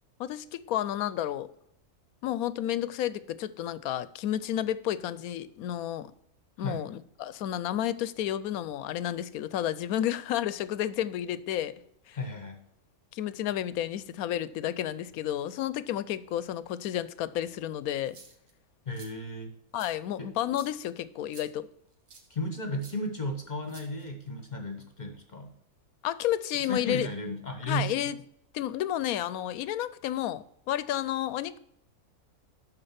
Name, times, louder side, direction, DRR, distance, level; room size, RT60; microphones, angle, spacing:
voice 1, 0.2-1.5 2.2-6.1 6.6-11.8 12.1-12.2 13.1-18.2 19.7-21.7 26.0-27.1 27.7-28.2 28.5-31.6, left 11 dB, 80° left, 1.0 m, -31 dB
voice 2, 12.1-12.6 18.9-19.5 20.2-20.3 22.3-25.5 26.5-28.1, left 1 dB, 35° left, 1.2 m, -34 dB
sound 1, 18.0-18.5 18.9-19.1 19.8-19.9 20.5-20.7 21.3-21.5 22.1-22.3 22.8-22.9 23.7-24.3, right 4 dB, 80° right, 1.8 m, -51 dB
12.0 x 4.4 x 5.7 m
omnidirectional pair, 1.5 m